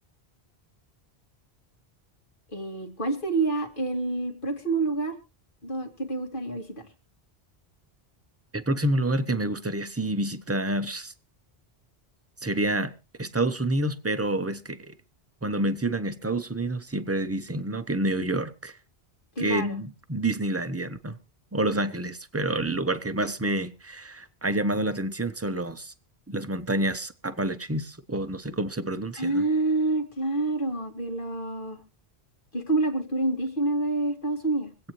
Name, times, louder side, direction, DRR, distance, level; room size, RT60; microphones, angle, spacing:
voice 1, 2.5-5.1 5.6-6.8 19.4-19.8 29.1-31.8 32.5-34.7, right 2 dB, 55° left, 2.4 m, -27 dB
voice 2, 8.5-11.1 12.4-12.9 13.2-15.0 15.4-18.8 19.4-21.2 21.5-25.9 26.3-29.4, right 1 dB, 15° right, 0.7 m, -28 dB
25.5 x 8.6 x 3.1 m
omnidirectional pair, 1.1 m